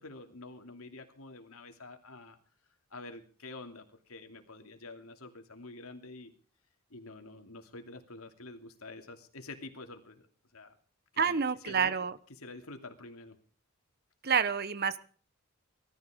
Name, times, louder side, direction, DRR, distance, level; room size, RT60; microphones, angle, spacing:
voice 1, 0.0-2.4 2.9-6.3 6.9-10.2 10.5-10.8 11.1-11.4 11.6-11.9 12.4-13.4, left 2 dB, 80° left, 5 dB, 2.7 m, -47 dB
voice 2, 11.2-12.2 14.2-15.0, right 6 dB, 45° right, 15 dB, 1.0 m, -28 dB
18.5 x 14.0 x 5.0 m, 0.41 s
head